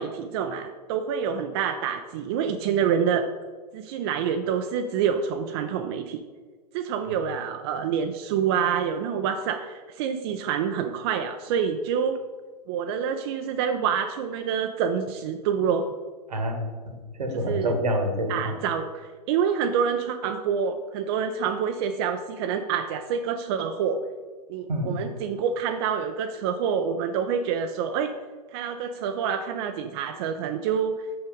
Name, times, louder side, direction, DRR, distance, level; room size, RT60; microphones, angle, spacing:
voice 1, 0.0-3.3 3.7-6.2 6.7-12.2 12.7-15.8 17.3-17.7 18.3-24.0 24.5-28.1 28.5-31.1, right 7 dB, 40° right, 7 dB, 0.5 m, -27 dB
voice 2, 16.3-18.6 24.7-25.0, equal, 70° right, 6 dB, 1.4 m, -28 dB
6.6 x 5.7 x 5.3 m, 1.5 s
figure-of-eight pair, 105°, 21 cm